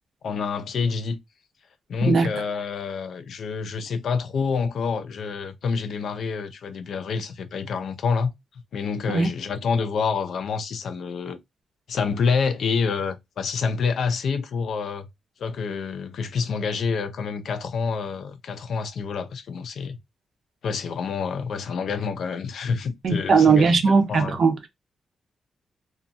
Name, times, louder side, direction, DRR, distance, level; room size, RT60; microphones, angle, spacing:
voice 1, 0.2-1.2 1.9-8.3 8.7-11.4 11.9-15.1 15.4-20.0 20.6-23.7 24.1-24.4, left 5 dB, 65° left, 0.4 m, -27 dB
voice 2, 2.0-2.3 9.1-9.3 23.0-24.7, right 5 dB, 55° right, 0.5 m, -19 dB
2.8 x 2.3 x 2.5 m
wide cardioid pair, 145°, 0 cm